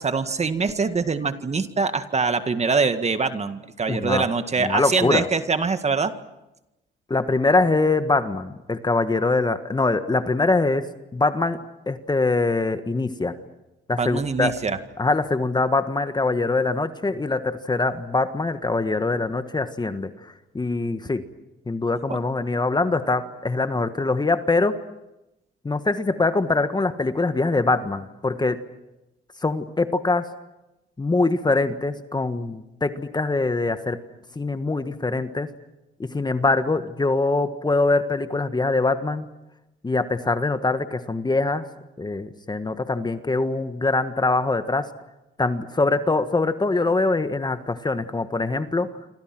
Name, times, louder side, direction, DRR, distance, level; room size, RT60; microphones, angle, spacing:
voice 1, 0.0-6.1 14.0-14.8 22.1-22.2, right 4 dB, 35° right, 9 dB, 1.9 m, -24 dB
voice 2, 3.9-4.2 4.6-5.3 7.1-10.9 11.1-11.6 11.9-13.4 13.9-14.5 15.0-21.2 21.7-24.8 25.6-28.6 29.4-30.3 31.0-34.0 34.3-35.5 36.0-39.3 39.8-41.6 42.0-44.9 45.4-48.9, left 3 dB, 20° left, 10 dB, 1.5 m, -23 dB
27.5 x 26.0 x 6.2 m, 0.94 s
cardioid pair, 90°, 20 cm